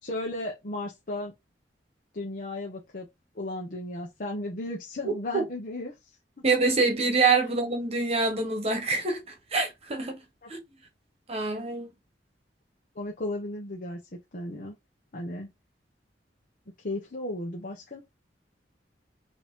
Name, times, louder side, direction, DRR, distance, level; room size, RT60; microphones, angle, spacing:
voice 1, 0.0-1.3 2.1-3.1 3.3-5.9 10.4-10.5 12.9-14.0 14.3-14.7 15.1-15.5 16.8-18.0, left 2 dB, 50° left, 1.0 m, -35 dB
voice 2, 5.0-5.4 6.4-10.2 10.5-10.6 11.3-11.9, right 3 dB, 35° right, 1.2 m, -26 dB
4.8 x 2.9 x 3.7 m
head